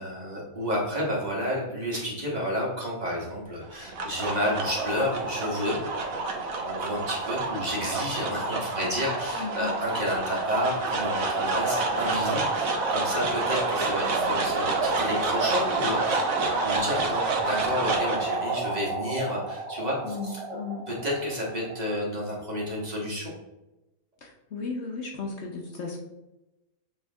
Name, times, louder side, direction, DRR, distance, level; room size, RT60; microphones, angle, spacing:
voice 1, 0.0-5.8 6.1-6.2 6.6-20.6 20.9-23.3, equal, 30° right, -4 dB, 1.5 m, -31 dB
sound 1, 3.6-22.0, right 3 dB, 80° right, 1.3 m, -28 dB
voice 2, 9.4-9.7 14.1-14.3 20.0-20.9 24.2-26.0, left 4 dB, 60° left, 1 dB, 1.0 m, -35 dB
8.2 x 3.3 x 3.5 m, 0.97 s
omnidirectional pair, 1.4 m